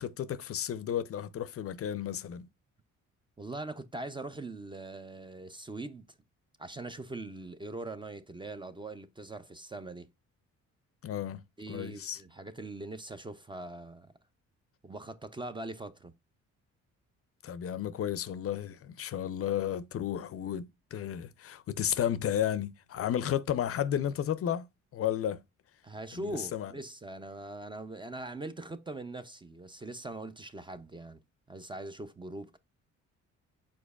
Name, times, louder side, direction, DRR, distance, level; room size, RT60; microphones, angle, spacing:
voice 1, 0.0-2.5 11.0-12.2 17.4-24.7 24.9-25.4 26.2-26.7, left 10 dB, 50° left, 0.5 m, -33 dB
voice 2, 3.4-6.2 6.6-10.1 11.6-14.1 14.8-16.1 25.8-31.2 31.5-32.6, right 2 dB, 15° right, 0.4 m, -42 dB
5.0 x 4.2 x 2.3 m
cardioid pair, 90°, 30 cm